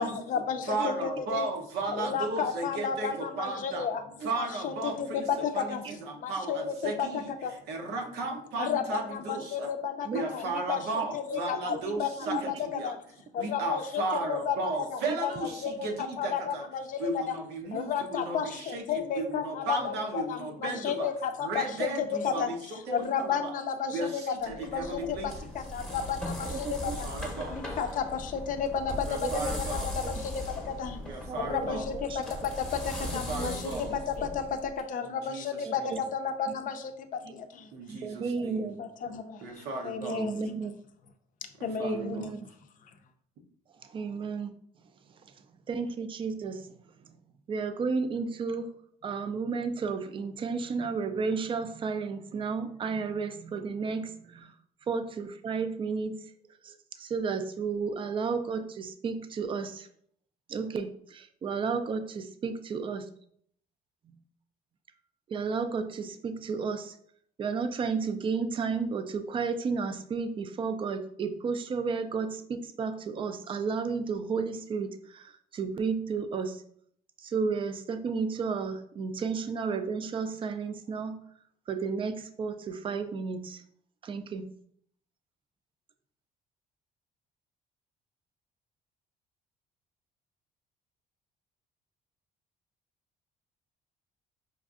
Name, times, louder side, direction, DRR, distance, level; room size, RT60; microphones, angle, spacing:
voice 1, 0.0-1.4 1.9-4.0 4.4-5.8 6.2-7.1 7.4-7.5 8.6-10.1 10.3-10.8 11.1-12.5 12.8-13.0 13.3-15.9 16.2-17.2 17.7-22.5 22.9-27.1 27.5-29.3 29.6-29.7 30.1-31.0 31.4-34.4 34.9-36.9 37.3-37.7 38.4-39.4 39.8-40.6 41.6-42.3, left 7 dB, 50° left, 7 dB, 0.5 m, -32 dB
voice 2, 0.6-3.9 4.2-9.7 10.1-12.9 13.4-16.7 17.0-21.1 21.4-23.6 23.9-25.5 26.8-27.6 29.0-29.9 31.0-31.9 33.0-33.9 35.0-36.1 37.7-38.8 39.4-40.3 41.6-42.4, right 3 dB, 80° right, 2 dB, 0.8 m, -35 dB
sound 1, 24.5-34.8, left 1 dB, 5° left, 0.8 m, -38 dB
voice 3, 26.5-27.0 29.2-29.5 31.3-31.8 33.4-33.5 35.6-36.0 37.3-37.4 37.9-38.8 40.1-40.8 41.8-42.4 43.9-44.5 45.7-46.6 47.5-48.7 49.0-54.5 54.9-56.2 56.6-59.9 60.5-63.0 65.3-66.9 67.4-76.6 77.2-81.2 81.7-83.6 84.0-84.5, right 5 dB, 30° right, 9 dB, 0.4 m, -32 dB
5.2 x 2.5 x 2.4 m, 0.66 s
cardioid pair, 110°, 17 cm